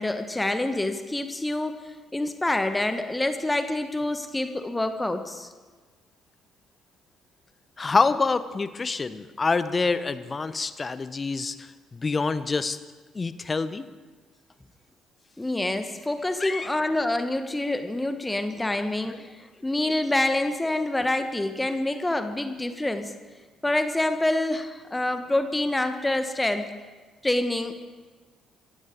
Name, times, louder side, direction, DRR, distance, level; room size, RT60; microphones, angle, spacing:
voice 1, 0.0-5.5 15.4-23.1 23.6-26.7 27.2-27.8, left 1 dB, 15° left, 8 dB, 1.3 m, -27 dB
voice 2, 7.8-12.8 13.1-13.8 16.4-16.7 18.8-18.9, left 4 dB, 30° left, 13 dB, 0.9 m, -26 dB
26.0 x 15.0 x 3.7 m, 1.4 s
figure-of-eight pair, 45°, 0 cm